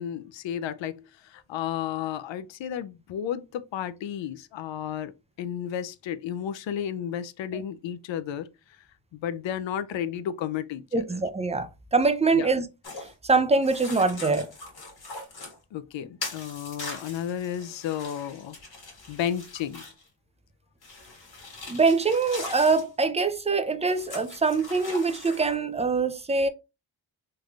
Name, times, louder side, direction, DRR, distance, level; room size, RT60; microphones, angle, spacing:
voice 1, 0.0-8.5 9.1-11.0 12.3-12.5 15.7-18.6 19.1-19.9, left 9 dB, 75° left, 0.5 m, -33 dB
voice 2, 10.9-12.6 13.2-14.5 21.7-26.5, right 4 dB, 15° right, 0.5 m, -24 dB
sound 1, 12.8-13.1 13.6-15.6 16.2-20.1 20.8-22.9 23.9-25.6, left 3 dB, 55° left, 1.7 m, -41 dB
3.3 x 3.2 x 2.4 m
cardioid pair, 70°, 46 cm